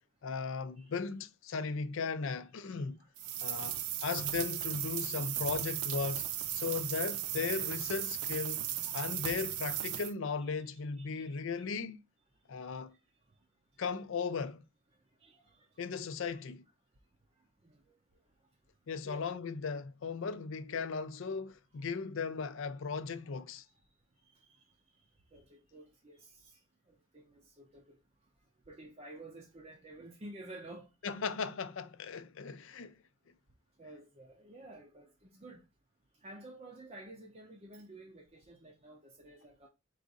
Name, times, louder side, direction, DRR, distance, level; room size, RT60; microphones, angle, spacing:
voice 1, 0.2-3.0 3.4-12.0 12.5-12.9 13.8-14.6 15.8-16.6 18.9-23.6 31.0-33.0, left 5 dB, 60° left, 0.4 m, -37 dB
voice 2, 2.7-3.7 8.8-9.0 11.0-11.3 15.2-15.7 17.6-18.0 19.0-19.2 24.2-25.0 25.3-28.0 28.7-31.2 33.8-35.6 36.1-39.7, right 1 dB, 30° right, 0.6 m, -52 dB
sound 1, 3.2-10.1, right 11 dB, 85° right, 0.5 m, -36 dB
4.7 x 2.5 x 3.9 m
head